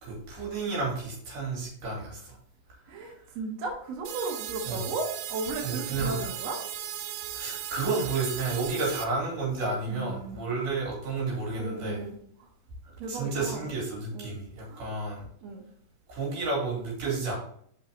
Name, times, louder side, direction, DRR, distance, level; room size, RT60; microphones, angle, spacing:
voice 1, 0.0-2.4 4.6-4.8 5.6-6.2 7.3-12.0 12.8-15.2 16.1-17.4, right 3 dB, 50° right, -3 dB, 4.2 m, -31 dB
voice 2, 2.9-6.6 8.8-8.9 9.9-10.4 11.6-12.5 13.0-13.7 14.1-14.3 14.7-14.8 15.4-15.6, right 3 dB, 70° right, 0 dB, 1.6 m, -35 dB
sound 1, 4.1-9.1, right 11 dB, 85° right, 2.9 m, -37 dB
6.0 x 5.7 x 4.0 m, 0.63 s
omnidirectional pair, 4.9 m